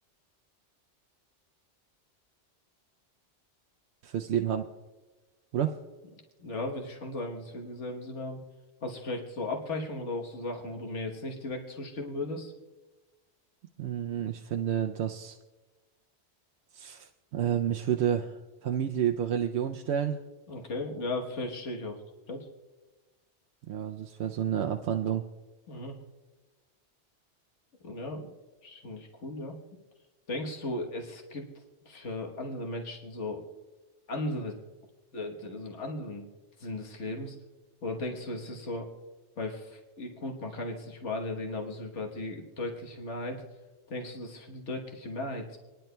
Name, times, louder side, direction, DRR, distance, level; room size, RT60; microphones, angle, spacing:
voice 1, 4.0-4.6 5.5-5.7 13.8-15.4 16.7-20.2 23.7-25.2, right 9 dB, 70° right, 4 dB, 0.8 m, -30 dB
voice 2, 6.4-8.4 8.8-12.5 20.5-22.5 25.7-26.0 27.8-28.3 28.6-29.6 30.3-31.5 31.8-33.5 34.1-34.6 35.1-36.3 36.6-37.4 37.8-38.9 39.4-43.4 43.9-45.6, left 2 dB, 85° left, 1 dB, 1.5 m, -36 dB
27.0 x 10.5 x 2.2 m, 1.2 s
omnidirectional pair, 1.2 m